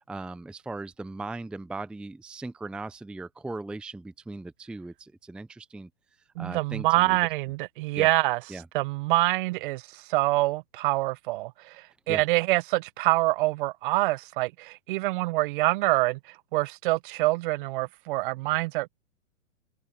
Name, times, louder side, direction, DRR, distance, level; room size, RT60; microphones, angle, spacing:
voice 1, 0.0-5.9 6.4-7.2 8.0-8.1 8.5-8.7 12.1-12.3, right 2 dB, ahead, 0.7 m, -38 dB
voice 2, 6.4-8.4 8.7-16.2 16.5-18.9, right 20 dB, 40° right, 1.5 m, -26 dB
figure-of-eight pair, 115°, 40 cm